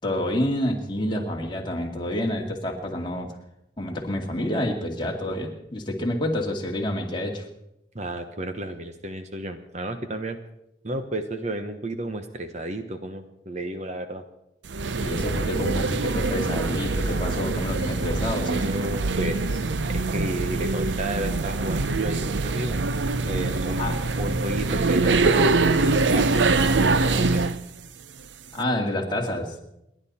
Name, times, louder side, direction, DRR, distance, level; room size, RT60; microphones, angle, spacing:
voice 1, 0.0-3.3 3.8-7.5 15.0-18.6 23.8-24.0 28.5-29.6, left 1 dB, 25° left, 0 dB, 2.4 m, -28 dB
voice 2, 7.9-10.4 10.8-14.2 18.1-19.4 19.9-22.8 23.2-23.9 24.2-27.4, right 1 dB, 40° right, 8 dB, 1.1 m, -32 dB
sound 1, 14.7-27.6, right 3 dB, 80° right, 0.7 m, -24 dB
29.5 x 11.5 x 4.3 m, 0.82 s
head